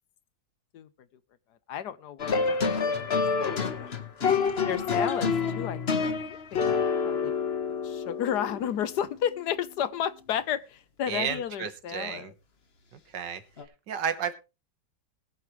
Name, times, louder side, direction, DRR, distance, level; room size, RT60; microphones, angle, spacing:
voice 1, 1.7-3.2 3.4-3.9 4.6-5.3 5.5-5.8 6.5-7.3 7.8-12.3, left 9 dB, 70° left, 1.4 m, -32 dB
sound 1, 2.2-9.0 13.6-13.7, left 5 dB, 40° left, 1.3 m, -28 dB
voice 2, 11.1-12.3 12.9-13.4 13.9-14.3, right 7 dB, 80° right, 1.9 m, -32 dB
21.0 x 8.3 x 3.2 m
omnidirectional pair, 1.9 m